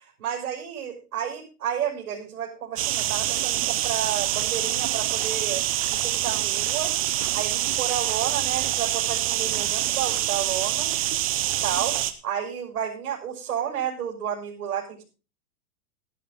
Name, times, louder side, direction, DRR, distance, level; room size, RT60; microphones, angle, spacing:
voice 1, 0.0-6.9 7.3-10.9 11.6-12.0 12.2-15.0, right 9 dB, 80° right, -1 dB, 6.2 m, -31 dB
sound 1, 2.8-12.1, right 13 dB, 25° right, 0.6 m, -26 dB
15.0 x 11.5 x 3.9 m, 0.34 s
supercardioid pair, 175°, 44 cm